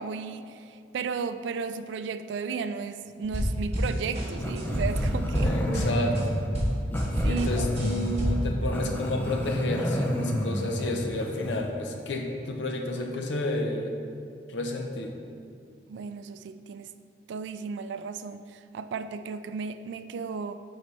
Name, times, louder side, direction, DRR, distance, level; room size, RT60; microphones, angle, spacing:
voice 1, 0.0-5.5 7.2-7.7 15.9-16.9 17.3-20.5, right 5 dB, 80° right, 11 dB, 0.3 m, -34 dB
sound 1, 3.2-6.3 6.5-8.5, equal, 35° right, 1.4 m, -28 dB
Growling, 4.4-11.7, equal, 10° left, 0.5 m, -30 dB
voice 2, 5.4-6.4 7.2-14.0 14.5-15.2, left 1 dB, 85° left, 3 dB, 0.7 m, -31 dB
10.5 x 4.0 x 3.2 m, 2.4 s
head